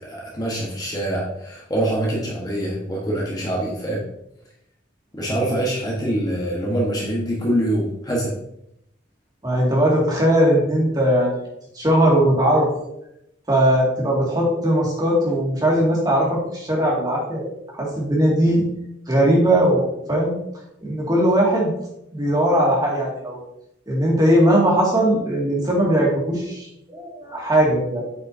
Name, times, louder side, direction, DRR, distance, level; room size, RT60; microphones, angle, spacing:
voice 1, 0.0-4.0 5.1-8.3, right 1 dB, 20° left, -3 dB, 1.2 m, -24 dB
voice 2, 9.4-11.3 11.7-12.7 13.5-17.5 17.7-18.6 19.1-19.8 20.1-20.3 20.8-21.7 22.1-23.4 23.9-28.0, right 1 dB, 20° right, -3 dB, 2.1 m, -19 dB
8.2 x 6.2 x 2.7 m, 0.80 s
head